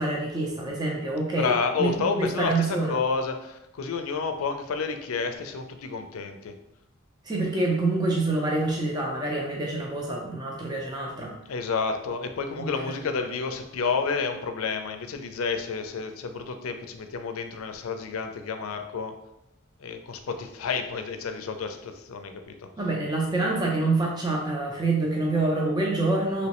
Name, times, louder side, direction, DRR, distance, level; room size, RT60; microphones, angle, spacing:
voice 1, 0.0-1.5 1.8-2.9 7.2-11.3 12.6-13.0 22.8-26.5, right 2 dB, 20° right, -2 dB, 0.5 m, -26 dB
voice 2, 1.4-6.6 11.5-19.1 19.8-22.5, left 5 dB, 90° left, 7 dB, 0.4 m, -30 dB
3.0 x 3.0 x 2.9 m, 0.86 s
head